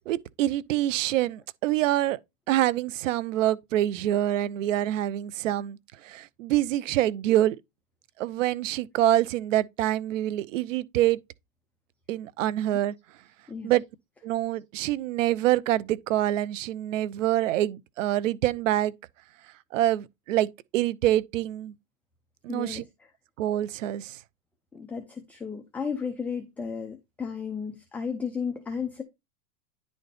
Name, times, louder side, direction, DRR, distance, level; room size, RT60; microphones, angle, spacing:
voice 1, 0.1-2.2 2.5-7.6 8.2-11.2 12.1-12.9 13.6-13.8 14.2-18.9 19.7-21.7 22.4-22.8 23.4-24.2, right 13 dB, 65° right, 0.8 m, -26 dB
voice 2, 22.5-22.9 24.7-29.0, left 6 dB, 5° left, 0.5 m, -34 dB
10.0 x 4.1 x 3.4 m
supercardioid pair, 150°, 42 cm